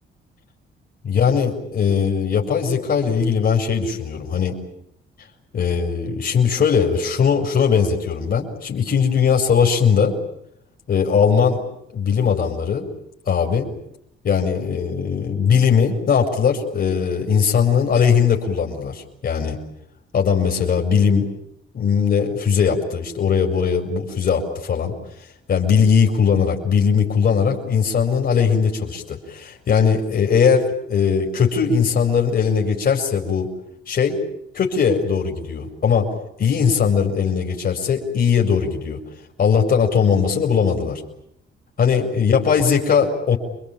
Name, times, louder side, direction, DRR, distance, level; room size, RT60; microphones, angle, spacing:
voice 1, 1.0-4.6 5.5-10.1 10.9-11.6 11.9-12.9 13.3-13.7 14.2-19.6 20.1-21.3 21.7-33.5 33.9-34.2 34.5-36.1 36.4-39.0 39.4-41.0 41.8-43.4, left 6 dB, 55° left, 1 dB, 5.0 m, -19 dB
29.0 x 22.5 x 8.8 m, 0.77 s
cardioid pair, 90°, 20 cm